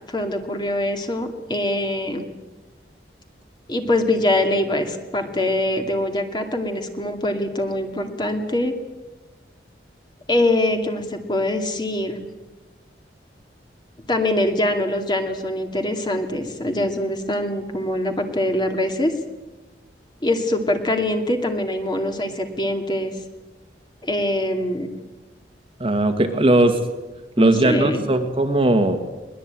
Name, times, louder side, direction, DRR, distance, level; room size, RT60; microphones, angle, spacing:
voice 1, 0.1-2.3 3.7-8.7 10.3-12.2 14.1-19.1 20.2-23.1 24.0-24.9 27.4-28.0, left 1 dB, 25° left, 5 dB, 2.4 m, -23 dB
voice 2, 25.8-26.8 27.4-29.0, right 1 dB, 30° right, 6 dB, 1.9 m, -18 dB
22.0 x 20.0 x 9.0 m, 1.2 s
head